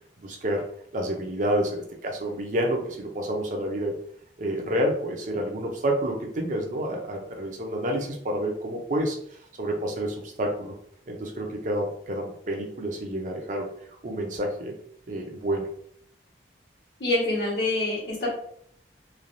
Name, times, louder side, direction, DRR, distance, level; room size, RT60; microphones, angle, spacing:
voice 1, 0.2-0.6 0.9-4.0 4.4-10.7 11.1-13.7 14.0-14.7 15.1-15.7, right 1 dB, 45° right, 1 dB, 0.5 m, -29 dB
voice 2, 17.0-18.3, left 2 dB, 65° left, -3 dB, 1.2 m, -26 dB
3.2 x 2.3 x 2.5 m, 0.64 s
head